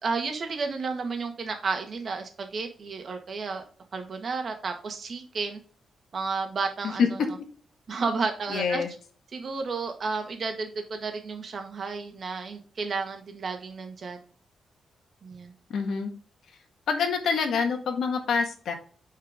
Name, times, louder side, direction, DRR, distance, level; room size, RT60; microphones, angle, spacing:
voice 1, 0.0-3.6 3.9-5.6 6.1-7.0 7.9-8.8 9.3-14.2 15.2-15.5, right 4 dB, 50° right, 4 dB, 1.7 m, -32 dB
voice 2, 8.5-8.9 15.7-16.1 16.9-18.7, left 5 dB, 75° left, 4 dB, 1.7 m, -26 dB
9.4 x 4.7 x 3.7 m, 0.42 s
cardioid pair, 125°, 0 cm